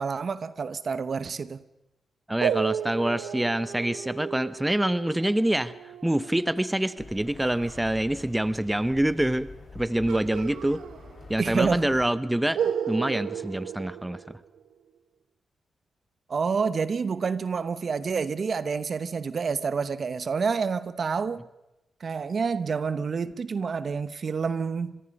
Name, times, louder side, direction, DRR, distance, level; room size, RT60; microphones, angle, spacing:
voice 1, 0.0-1.6 11.4-11.8 16.3-21.4 22.0-25.0, right 5 dB, 55° right, 0.9 m, -28 dB
voice 2, 2.3-10.8 11.3-14.2, right 1 dB, 10° right, 1.0 m, -26 dB
sound 1, 2.4-7.8 10.1-11.5 11.8-11.9 12.5-14.7, right 8 dB, 85° right, 1.0 m, -34 dB
sound 2, 7.0-12.1, left 3 dB, 45° left, 4.6 m, -46 dB
26.0 x 21.5 x 5.4 m
cardioid pair, 60°, 0 cm